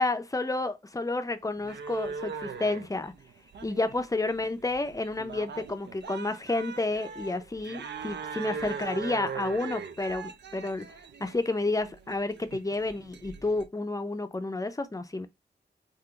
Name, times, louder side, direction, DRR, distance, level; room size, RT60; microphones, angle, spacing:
voice 1, 0.0-3.1 3.6-10.9 11.2-15.3, left 2 dB, 20° left, 0.4 m, -30 dB
sound 1, 1.6-13.6, right 5 dB, 85° right, 0.4 m, -40 dB
3.6 x 2.5 x 2.3 m
wide cardioid pair, 75°, 18 cm